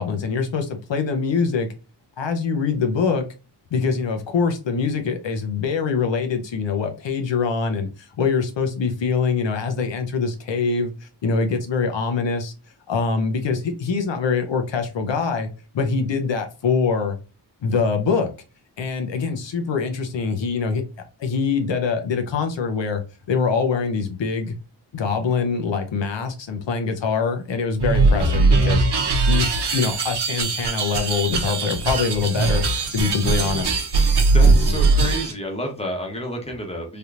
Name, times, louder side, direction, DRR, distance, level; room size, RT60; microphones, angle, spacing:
voice 1, 0.0-1.7 2.2-3.3 3.7-12.5 12.9-15.5 15.7-17.2 17.6-18.3 18.8-20.8 21.2-23.0 23.3-24.6 24.9-28.8 29.3-33.7, left 5 dB, 85° left, 5 dB, 0.7 m, -24 dB
sound 1, 27.8-35.3, right 3 dB, 65° right, 0.8 m, -20 dB
voice 2, 34.3-37.0, equal, 15° left, 2 dB, 0.8 m, -28 dB
3.4 x 2.8 x 2.4 m, 0.32 s
wide cardioid pair, 135°, 43 cm